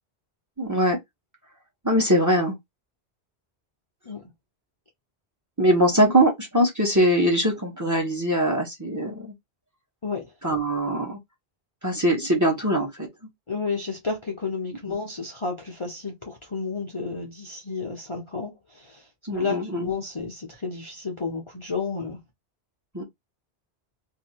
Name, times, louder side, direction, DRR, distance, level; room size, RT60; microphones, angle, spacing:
voice 1, 0.6-1.0 1.8-2.6 5.6-9.3 10.4-11.2 11.8-13.1 19.3-19.9 22.9-23.0, equal, 15° right, 1.1 m, -22 dB
voice 2, 10.0-10.3 13.5-19.1 19.3-22.2, left 4 dB, 30° left, 0.7 m, -31 dB
2.7 x 2.7 x 2.8 m
omnidirectional pair, 1.1 m